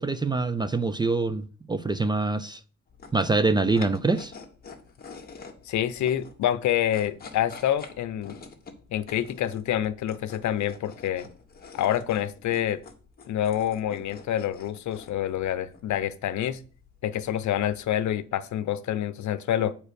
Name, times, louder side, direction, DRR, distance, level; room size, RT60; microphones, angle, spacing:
voice 1, 0.0-2.6 3.1-4.3, right 3 dB, 15° right, 0.3 m, -25 dB
sound 1, 2.9-18.2, left 4 dB, 30° left, 1.5 m, -48 dB
voice 2, 5.7-8.4 8.9-11.3 11.7-12.8 13.3-16.6 17.0-19.7, left 11 dB, 75° left, 0.8 m, -27 dB
8.6 x 4.7 x 6.6 m
wide cardioid pair, 160°, 29 cm